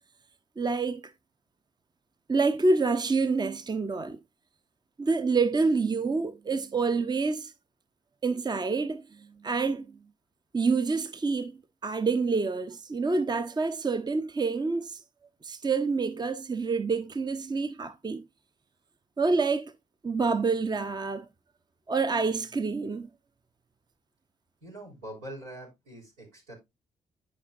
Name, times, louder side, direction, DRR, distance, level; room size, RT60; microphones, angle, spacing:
voice 1, 0.6-1.0 2.3-4.2 5.0-7.5 8.2-9.9 10.5-15.0 15.4-18.2 19.2-19.7 20.0-21.3 21.9-23.1, right 4 dB, 30° right, 0.7 m, -27 dB
voice 2, 24.6-26.5, right 1 dB, 90° right, 3.9 m, -43 dB
11.0 x 5.1 x 2.5 m
hypercardioid pair, 45°, 15 cm